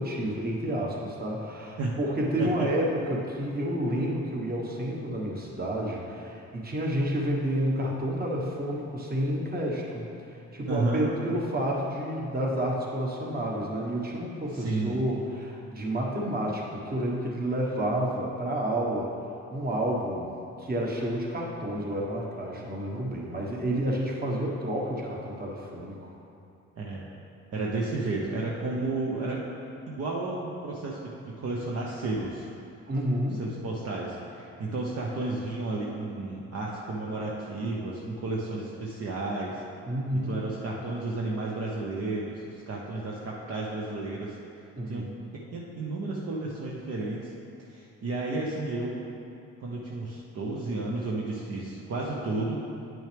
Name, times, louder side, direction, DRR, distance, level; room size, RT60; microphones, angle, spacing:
voice 1, 0.0-19.1 19.5-20.3 20.6-26.1 32.9-33.4 39.9-40.5 44.8-45.1, right 1 dB, 30° right, -2 dB, 1.4 m, -30 dB
voice 2, 10.7-11.1 14.5-15.0 26.8-27.0 27.5-29.4 29.9-32.5 33.4-39.6 40.2-44.3 44.9-47.3 47.7-49.1 49.6-52.6, right 2 dB, 55° right, -3 dB, 0.9 m, -32 dB
9.3 x 6.1 x 3.4 m, 2.6 s
cardioid pair, 90°, 30 cm